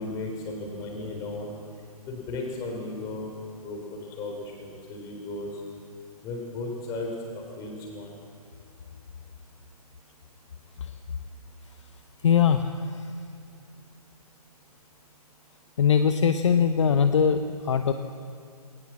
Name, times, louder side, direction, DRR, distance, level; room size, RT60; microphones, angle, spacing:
voice 1, 0.0-1.5 2.1-3.3 3.6-5.5 6.2-8.1, left 2 dB, 20° left, 2 dB, 3.8 m, -35 dB
voice 2, 12.2-13.1 15.8-17.9, left 7 dB, 50° left, 9 dB, 0.9 m, -22 dB
20.0 x 19.0 x 7.5 m, 2.2 s
figure-of-eight pair, 140°, 20 cm